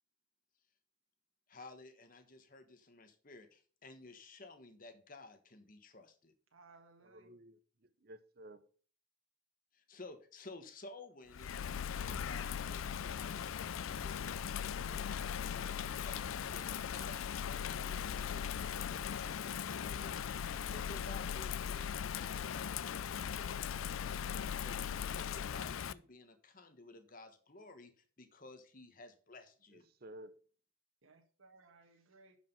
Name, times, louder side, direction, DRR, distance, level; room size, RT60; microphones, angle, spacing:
voice 1, 1.5-6.3 9.7-29.9, left 2 dB, 40° left, 1.2 m, -55 dB
voice 2, 6.5-7.4 31.0-32.4, right 3 dB, 85° right, 1.4 m, -62 dB
voice 3, 7.0-8.7 29.7-30.4, right 1 dB, 50° right, 0.8 m, -54 dB
Bird vocalization bird call bird song / Rain, 11.3-25.9, left 8 dB, 80° left, 0.4 m, -39 dB
11.5 x 5.0 x 5.4 m
head